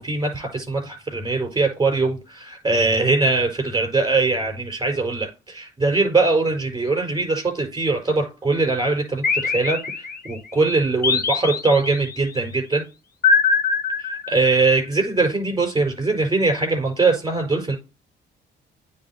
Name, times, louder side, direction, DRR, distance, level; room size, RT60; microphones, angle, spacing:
voice 1, 0.0-12.8 14.0-17.8, right 3 dB, 20° right, 4 dB, 4.6 m, -22 dB
sound 1, 9.2-10.4 11.0-12.2 13.2-14.7, left 5 dB, 50° left, 1.2 m, -22 dB
8.9 x 3.8 x 4.2 m, 0.29 s
cardioid pair, 90°, 20 cm